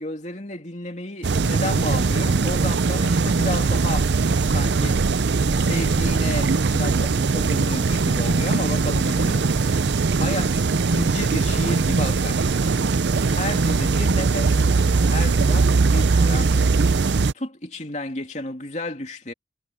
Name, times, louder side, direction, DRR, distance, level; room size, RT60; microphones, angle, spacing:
voice 1, 0.0-4.1 4.5-5.0 5.6-9.4 10.2-12.6 13.3-14.7 15.0-16.7 17.3-19.3, left 1 dB, 40° left, 3.0 m, -32 dB
sound 1, 1.2-17.3, right 4 dB, 70° right, 0.6 m, -20 dB
head